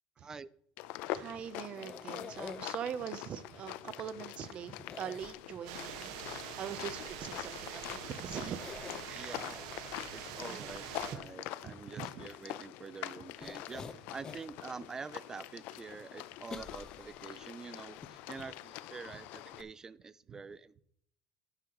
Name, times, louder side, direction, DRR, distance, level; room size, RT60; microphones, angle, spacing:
sound 1, 0.8-19.6, left 15 dB, 65° left, 0.6 m, -45 dB
voice 1, 1.1-8.7 9.0-9.4 10.5-10.6 11.6-12.3 20.3-20.4, right 8 dB, 40° right, 13 dB, 0.7 m, -42 dB
sound 2, 1.8-2.9 4.9-5.8 7.7-7.8 8.3-9.1 13.4-14.5 15.0-15.1 16.5-17.5 18.0-18.1 18.4-18.5, left 5 dB, 25° left, 0.8 m, -46 dB
sound 3, 5.7-11.2, right 9 dB, 85° right, 1.4 m, -45 dB
voice 2, 9.1-9.7 10.1-20.8, right 5 dB, 20° right, 18 dB, 0.3 m, -47 dB
11.5 x 9.9 x 3.0 m, 0.68 s
cardioid pair, 135°, 3 cm